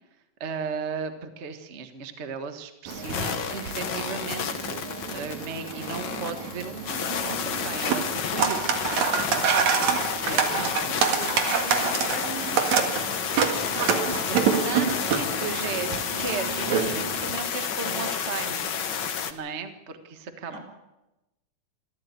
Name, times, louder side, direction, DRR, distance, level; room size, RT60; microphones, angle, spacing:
voice 1, 0.4-8.8 9.3-10.9 14.0-18.7 19.3-20.6, right 5 dB, 40° right, 8 dB, 1.0 m, -35 dB
sound 1, 2.9-19.3, left 7 dB, 55° left, 1.3 m, -30 dB
sound 2, 2.9-17.3, right 6 dB, 65° right, 3.1 m, -28 dB
voice 2, 10.8-13.0 20.5-20.6, right 2 dB, 80° right, 0 dB, 6.1 m, -41 dB
25.0 x 14.0 x 8.4 m, 0.99 s
omnidirectional pair, 3.7 m